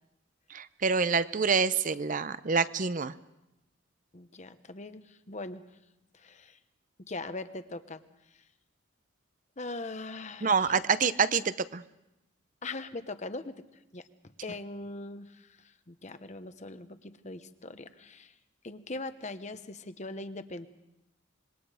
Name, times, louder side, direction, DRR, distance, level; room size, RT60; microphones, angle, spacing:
voice 1, 0.5-3.1 10.4-11.8, right 5 dB, 40° right, 14 dB, 0.7 m, -27 dB
voice 2, 4.1-5.6 6.1-6.6 7.1-8.0 9.6-10.8 12.6-13.5 13.9-14.0 14.4-18.3 18.6-20.7, left 2 dB, 35° left, 10 dB, 1.0 m, -41 dB
26.0 x 22.0 x 5.0 m, 0.93 s
head